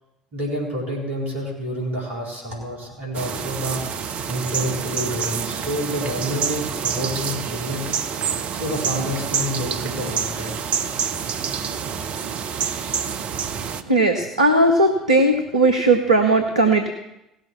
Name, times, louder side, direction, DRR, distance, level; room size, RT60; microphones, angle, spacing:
voice 1, 0.3-3.8 4.3-8.0 8.5-10.5, equal, 60° right, -4 dB, 3.9 m, -28 dB
sound 1, 3.1-13.8, right 7 dB, 45° right, 0.7 m, -27 dB
voice 2, 13.9-16.9, right 2 dB, 80° right, 4 dB, 0.8 m, -17 dB
17.0 x 6.7 x 6.1 m, 0.90 s
figure-of-eight pair, 60°, 3 cm